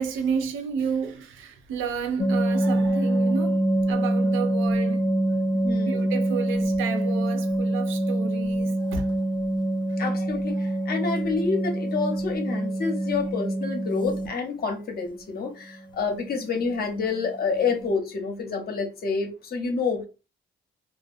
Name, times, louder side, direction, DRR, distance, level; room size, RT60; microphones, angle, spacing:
voice 1, 0.0-5.0 5.9-9.1 10.5-10.6, right 6 dB, 85° right, 0.5 m, -31 dB
sound 1, 2.2-14.3 16.1-16.3 16.6-16.8 17.2-17.3 17.6-17.9, right 1 dB, 20° left, 0.5 m, -25 dB
voice 2, 5.5-6.1 10.0-20.1, left 4 dB, 50° left, 0.8 m, -28 dB
2.3 x 2.2 x 2.5 m
cardioid pair, 90°, 20 cm